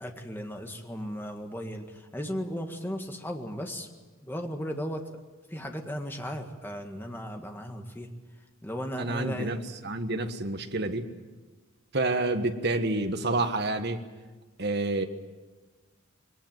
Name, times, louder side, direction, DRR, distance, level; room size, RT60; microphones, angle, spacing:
voice 1, 0.0-3.9 4.2-5.2 5.5-8.1 8.6-9.6, equal, 10° left, 4 dB, 1.8 m, -36 dB
voice 2, 9.0-9.6 9.8-11.1 11.9-14.0 14.6-15.1, right 2 dB, 55° right, 7 dB, 1.4 m, -28 dB
21.5 x 18.5 x 9.2 m, 1.3 s
head